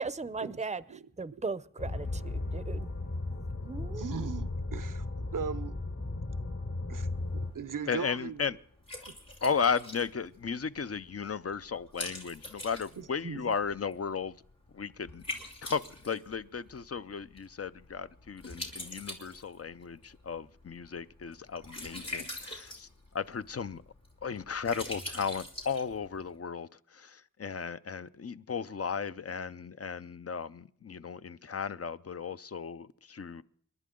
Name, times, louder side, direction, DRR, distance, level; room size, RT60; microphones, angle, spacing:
voice 1, 0.0-0.8 1.2-2.9 3.6-4.3, right 4 dB, 20° right, 0.6 m, -37 dB
sound 1, 1.8-7.5, left 2 dB, 65° left, 4.2 m, -35 dB
voice 2, 4.0-5.7 6.9-7.1 7.5-8.4 13.0-13.4, right 6 dB, 70° right, 0.7 m, -38 dB
Liquid, 6.9-26.4, left 1 dB, 85° left, 3.6 m, -45 dB
voice 3, 7.9-8.6 9.4-14.4 14.7-15.2 15.6-22.9 23.1-23.8 24.2-33.4, left 6 dB, 45° left, 0.6 m, -35 dB
28.0 x 11.5 x 3.8 m
wide cardioid pair, 45°, 32 cm